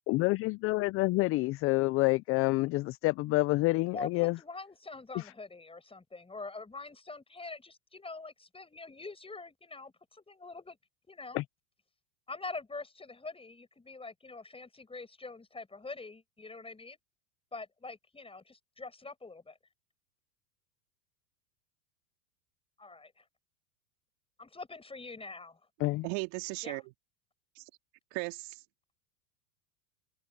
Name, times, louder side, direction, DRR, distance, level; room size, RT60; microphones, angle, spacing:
voice 1, 0.1-4.4 5.1-5.3 11.3-11.4 25.8-26.1, left 21 dB, 30° left, 0.4 m, -28 dB
voice 2, 3.9-10.8 11.1-11.4 12.3-17.0 17.5-19.6 22.8-23.2 24.4-25.6 26.6-26.8, left 3 dB, 10° left, 6.5 m, -44 dB
voice 3, 26.0-26.8 27.6-27.7 28.1-28.6, right 27 dB, 55° right, 2.5 m, -36 dB
open air
hypercardioid pair, 110°, 49 cm